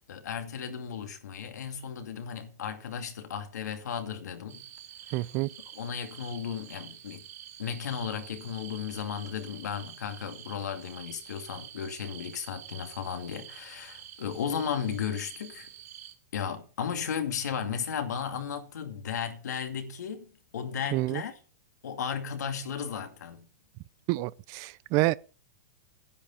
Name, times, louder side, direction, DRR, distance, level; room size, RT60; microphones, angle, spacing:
voice 1, 0.1-4.7 5.1-5.2 5.7-7.2 7.6-15.7 16.3-21.3 21.8-23.5, left 7 dB, 90° left, 2.4 m, -35 dB
sound 1, 4.5-16.1, right 10 dB, 75° right, 2.7 m, -48 dB
voice 2, 5.1-5.5 20.9-21.2 24.1-25.2, right 20 dB, 40° right, 0.5 m, -28 dB
10.0 x 9.4 x 5.7 m
hypercardioid pair, 140°, 9 cm